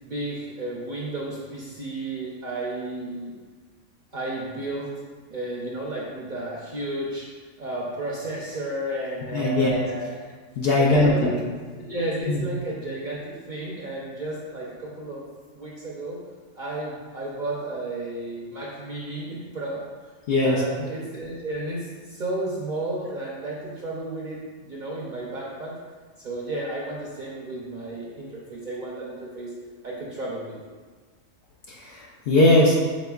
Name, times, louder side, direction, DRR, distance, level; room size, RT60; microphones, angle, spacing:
voice 1, 0.0-3.3 4.1-4.9 5.3-7.3 7.6-10.3 10.7-11.4 11.8-15.2 15.5-16.2 16.6-19.8 20.4-25.7 26.2-29.5 29.8-30.6, right 1 dB, 50° right, -4 dB, 0.6 m, -32 dB
voice 2, 9.3-9.8 10.6-11.3 12.3-12.4 20.3-20.6 31.7-32.8, left 1 dB, 60° left, -3 dB, 0.7 m, -20 dB
5.0 x 4.3 x 2.3 m, 1.5 s
omnidirectional pair, 1.4 m